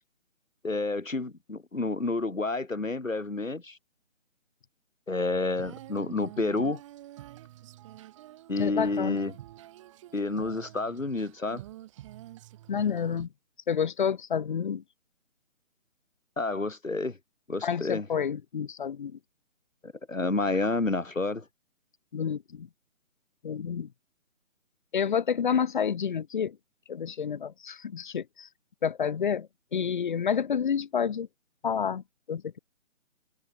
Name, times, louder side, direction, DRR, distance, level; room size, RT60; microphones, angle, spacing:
voice 1, 0.6-3.8 5.1-6.8 8.5-9.3 10.1-11.6 16.4-17.2 17.5-18.1 19.8-21.4, left 3 dB, 75° left, 7.6 m, -29 dB
Female singing, 5.5-13.3, right 14 dB, 25° right, 7.6 m, -47 dB
voice 2, 8.6-9.2 12.7-13.3 13.7-14.8 17.6-19.2 22.1-22.7 23.4-23.9 24.9-26.6 26.9-28.5 28.8-31.3 31.6-32.6, left 7 dB, 35° left, 2.8 m, -29 dB
open air
figure-of-eight pair, 150°, 39 cm